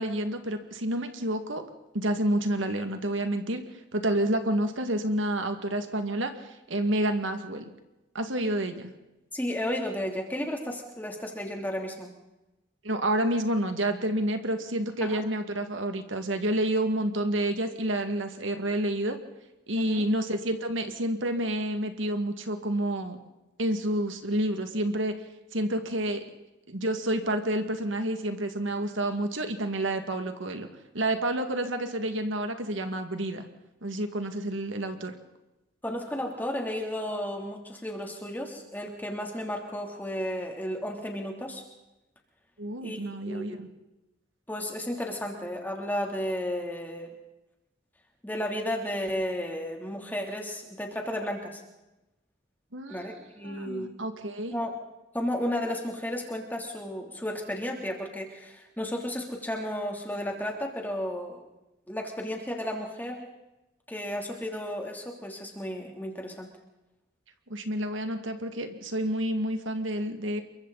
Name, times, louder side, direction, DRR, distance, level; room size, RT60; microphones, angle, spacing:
voice 1, 0.0-1.6 1.9-3.6 3.9-7.7 8.1-8.9 12.8-19.2 19.7-23.2 23.6-25.1 25.5-26.2 26.7-30.7 30.9-33.5 33.8-35.1 42.6-43.7 52.7-53.1 53.4-54.5 67.5-70.4, right 1 dB, 90° right, 6 dB, 2.2 m, -29 dB
voice 2, 9.3-12.1 15.0-15.2 19.7-20.0 35.8-41.7 42.8-43.0 43.3-43.6 44.5-47.1 48.2-51.6 52.9-53.9 54.5-54.8 55.1-61.4 61.9-63.3 63.9-66.5, left 1 dB, 10° left, 1 dB, 3.3 m, -33 dB
28.5 x 23.5 x 4.2 m, 0.99 s
head